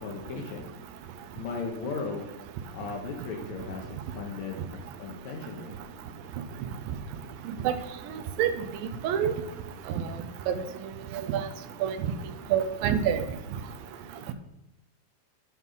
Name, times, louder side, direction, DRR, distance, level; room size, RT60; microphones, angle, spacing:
voice 1, 0.0-0.7 1.4-2.3 2.7-3.9 4.2-5.8, left 4 dB, 65° left, 1 dB, 2.0 m, -36 dB
voice 2, 12.5-13.2, right 9 dB, 85° right, 10 dB, 2.4 m, -25 dB
11.5 x 5.5 x 3.9 m, 0.86 s
omnidirectional pair, 4.1 m